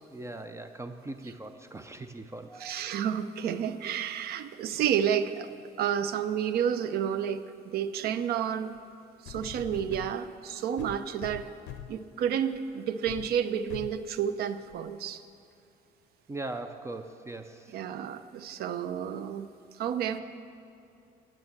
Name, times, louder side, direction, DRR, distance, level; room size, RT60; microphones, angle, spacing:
voice 1, 0.1-2.9 16.3-17.7, right 2 dB, 15° right, 9 dB, 0.5 m, -40 dB
voice 2, 2.6-5.5 5.8-8.8 9.2-11.5 11.9-15.2 17.7-19.5 19.8-20.2, right 8 dB, 70° right, 12 dB, 0.6 m, -30 dB
sound 1, 8.7-8.8 9.3-10.1 10.8-12.0 12.5-12.7 13.1-13.3 13.7-14.0 14.7-14.8, left 10 dB, 85° left, 0.5 m, -43 dB
9.7 x 7.4 x 7.7 m, 2.7 s
cardioid pair, 110°, 17 cm